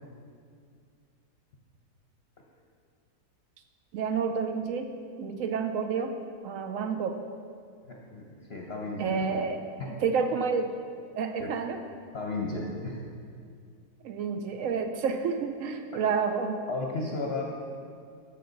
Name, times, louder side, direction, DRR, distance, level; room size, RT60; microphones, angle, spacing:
voice 1, 3.9-4.9 5.2-6.1 6.4-7.2 9.0-9.6 10.0-10.7 11.1-11.8 14.0-16.6, right 5 dB, 70° right, 7 dB, 0.8 m, -29 dB
voice 2, 7.9-9.4 9.8-9.9 11.4-11.6 12.1-13.0 16.7-17.4, left 3 dB, 50° left, -1 dB, 0.9 m, -34 dB
13.0 x 5.8 x 3.9 m, 2.2 s
omnidirectional pair, 1.8 m